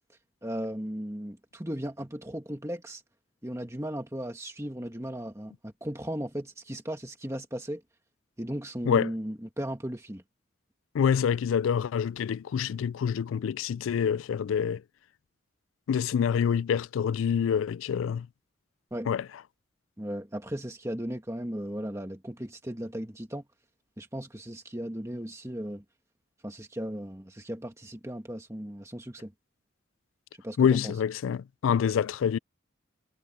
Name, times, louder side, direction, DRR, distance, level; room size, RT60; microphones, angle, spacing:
voice 1, 0.4-3.0 3.4-7.8 8.4-10.2 18.9-19.1 20.0-23.4 24.0-25.8 26.4-29.3 30.4-30.9, equal, 15° right, 1.6 m, -36 dB
voice 2, 10.9-14.8 15.9-18.3 19.1-19.3 30.6-32.4, left 7 dB, 90° left, 0.3 m, -26 dB
head